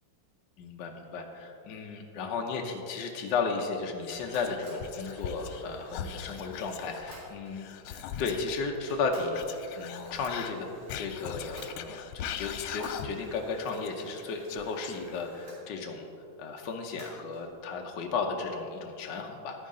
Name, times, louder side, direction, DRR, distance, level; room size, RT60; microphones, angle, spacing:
voice 1, 0.6-9.4 9.8-10.7 10.9-16.0 16.4-19.7, left 4 dB, 65° left, 2 dB, 1.4 m, -34 dB
Whispering, 4.0-5.6 5.9-8.6 9.3-13.3 13.6-15.4, left 9 dB, 85° left, 1.4 m, -40 dB
sound 1, 4.1-7.7 8.4-8.5 8.9-12.2 12.6-15.6 17.0-17.5, right 1 dB, 80° right, 3.8 m, -53 dB
12.0 x 9.4 x 3.7 m, 2.7 s
omnidirectional pair, 2.3 m